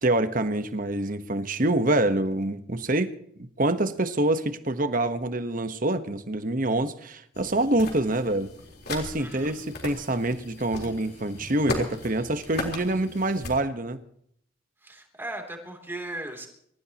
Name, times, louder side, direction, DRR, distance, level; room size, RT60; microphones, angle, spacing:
voice 1, 0.0-8.5 8.9-14.0, right 1 dB, 40° right, 1.2 m, -26 dB
sound 1, 7.3-13.5, left 2 dB, 50° left, 3.9 m, -37 dB
voice 2, 9.1-9.6 14.8-16.5, right 1 dB, 10° right, 3.0 m, -37 dB
26.5 x 15.0 x 3.0 m
head